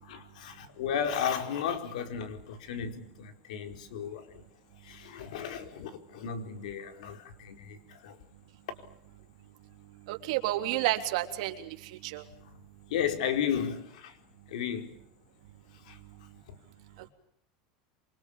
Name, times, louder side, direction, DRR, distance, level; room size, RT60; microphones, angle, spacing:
voice 1, 0.0-4.4 4.8-8.2 12.9-14.2 14.5-15.0 15.8-16.0 16.5-16.6, left 8 dB, 85° left, 4.7 m, -34 dB
voice 2, 10.1-11.7 12.0-12.2, right 15 dB, 60° right, 3.3 m, -30 dB
28.0 x 24.5 x 7.4 m
supercardioid pair, 180°, 4 cm